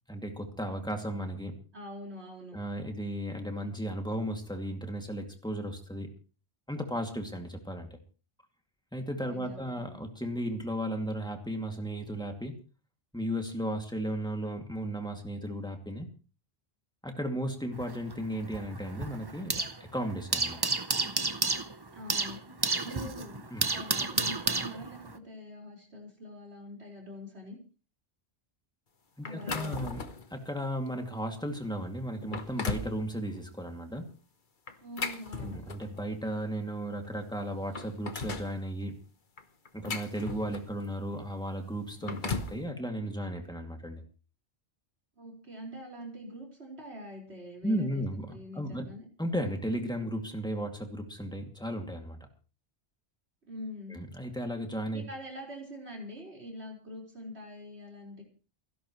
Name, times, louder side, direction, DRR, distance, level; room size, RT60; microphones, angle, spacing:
voice 1, 0.1-1.6 2.5-6.1 6.7-8.0 8.9-12.6 13.1-16.1 17.0-20.6 23.5-23.7 29.2-30.0 30.3-34.1 35.4-39.0 39.7-44.0 47.6-48.9 49.2-52.2 53.9-55.1, equal, 5° left, 3 dB, 2.5 m, -35 dB
voice 2, 1.7-2.6 9.2-9.8 21.9-27.6 29.2-30.0 34.8-35.6 45.2-48.0 48.3-49.0 53.5-54.0 54.9-58.2, left 1 dB, 75° right, 0 dB, 5.2 m, -44 dB
sound 1, 17.7-19.8 20.1-25.2, right 3 dB, 25° right, 0.8 m, -31 dB
sound 2, 29.2-30.3 30.9-31.0 31.6-31.7 32.2-33.0 34.7-36.0 37.0-37.1 37.5-38.5 39.4-40.8 41.8-42.6, left 4 dB, 50° left, 1.3 m, -37 dB
29.5 x 11.0 x 3.2 m, 0.35 s
omnidirectional pair, 1.1 m